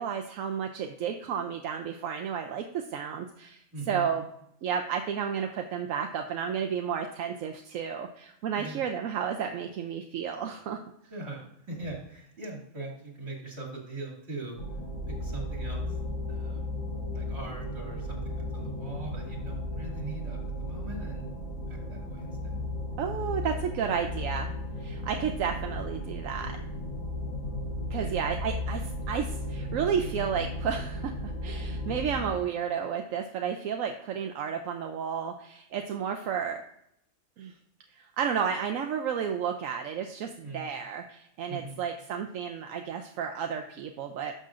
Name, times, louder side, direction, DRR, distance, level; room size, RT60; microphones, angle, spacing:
voice 1, 0.0-3.6 3.9-4.3 4.6-10.8 23.0-24.5 24.8-26.6 27.9-36.6 37.4-37.5 37.9-44.3, right 7 dB, 85° right, 4 dB, 1.0 m, -32 dB
voice 2, 3.7-4.1 8.6-8.8 11.1-14.6 15.1-16.0 16.3-16.7 17.1-21.3 21.7-22.5 27.9-28.1 40.4-40.7 41.5-41.7, right 2 dB, 55° right, -2 dB, 2.6 m, -41 dB
sound 1, 14.6-32.3, left 1 dB, 90° left, 4.0 m, -35 dB
11.5 x 6.7 x 2.5 m, 0.75 s
omnidirectional pair, 1.3 m